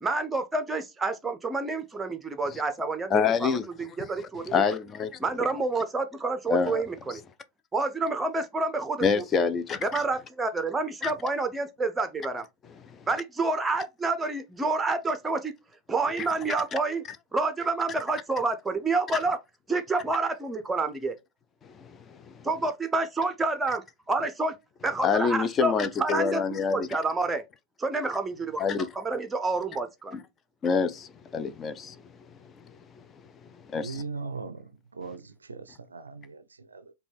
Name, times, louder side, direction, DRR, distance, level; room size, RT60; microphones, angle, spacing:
voice 1, 0.0-3.6 4.0-4.6 5.2-7.2 7.7-9.2 9.8-12.4 13.1-15.5 15.9-17.0 17.3-19.4 19.7-21.1 22.4-24.6 24.8-26.4 26.7-27.4 27.8-28.6 28.9-30.2, right 3 dB, 10° right, 0.6 m, -28 dB
voice 2, 3.1-3.7 4.0-4.1 4.5-5.5 6.5-6.8 7.1-7.2 9.0-10.0 11.0-11.1 12.8-13.1 16.2-16.3 21.6-22.5 25.0-26.9 28.6-28.9 30.1-30.2 30.6-32.1 32.4-32.8 33.6-34.0, left 6 dB, 25° left, 0.4 m, -27 dB
voice 3, 33.8-36.9, right 4 dB, 75° right, 0.4 m, -39 dB
5.0 x 2.3 x 3.3 m
figure-of-eight pair, 90°, 0 cm